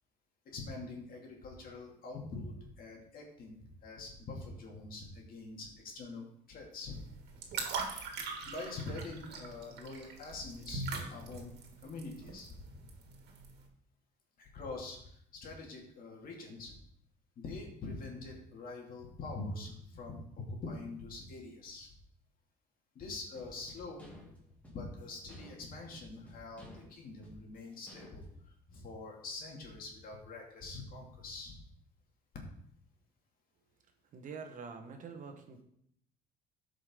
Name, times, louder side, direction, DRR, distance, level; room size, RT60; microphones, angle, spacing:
voice 1, 0.5-7.0 8.4-11.5 11.8-12.9 14.4-16.8 17.4-20.2 20.6-21.9 22.9-24.3 24.7-28.2 28.7-31.5, left 3 dB, 60° left, 0 dB, 2.4 m, -45 dB
sound 1, 6.9-13.6, right 4 dB, 80° right, 1.8 m, -42 dB
sound 2, 23.3-28.5, equal, 10° left, 2.7 m, -55 dB
voice 2, 34.1-35.6, right 5 dB, 50° right, 5 dB, 1.2 m, -46 dB
12.5 x 5.2 x 3.8 m, 0.70 s
cardioid pair, 110°, 17 cm